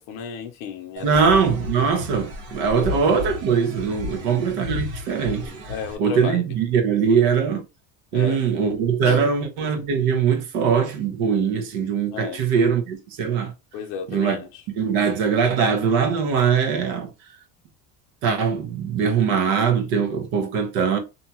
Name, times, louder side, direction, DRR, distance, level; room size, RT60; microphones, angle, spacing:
voice 1, 0.0-1.3 2.8-2.9 4.1-4.2 5.7-6.5 7.1-7.2 8.1-8.4 9.0-9.3 12.1-12.4 13.7-14.6, left 7 dB, 55° left, 0.7 m, -33 dB
voice 2, 1.0-5.5 6.0-7.6 8.1-13.5 14.1-14.4 14.7-17.1 18.2-21.0, right 6 dB, 65° right, 0.8 m, -21 dB
sound 1, 1.0-6.0, left 2 dB, 80° right, 1.3 m, -33 dB
2.7 x 2.2 x 2.8 m
cardioid pair, 170°, 38 cm